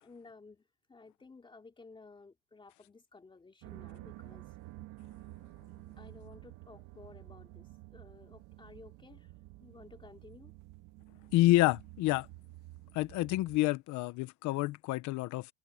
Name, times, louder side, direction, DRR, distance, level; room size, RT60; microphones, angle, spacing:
voice 1, 0.0-4.5 6.0-9.3 9.6-10.5, left 3 dB, 15° left, 3.0 m, -55 dB
sound 1, 3.6-13.6, right 18 dB, 60° right, 1.9 m, -51 dB
voice 2, 11.3-12.3 12.9-15.5, left 17 dB, 55° left, 1.1 m, -28 dB
cardioid pair, 140°, 35 cm